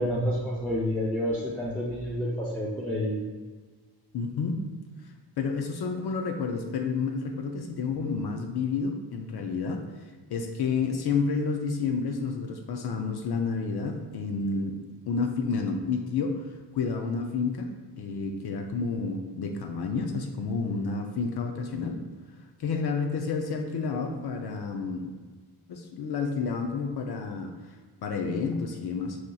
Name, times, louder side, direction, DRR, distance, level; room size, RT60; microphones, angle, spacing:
voice 1, 0.0-3.2, equal, 5° left, -6 dB, 0.5 m, -29 dB
voice 2, 4.1-4.6 5.4-9.8 10.3-14.8 15.1-16.5 16.7-17.7 18.0-22.0 22.6-25.1 25.7-27.5 28.0-29.2, left 4 dB, 70° left, 4 dB, 0.5 m, -30 dB
6.2 x 2.8 x 2.3 m, 1.4 s
wide cardioid pair, 160°, 41 cm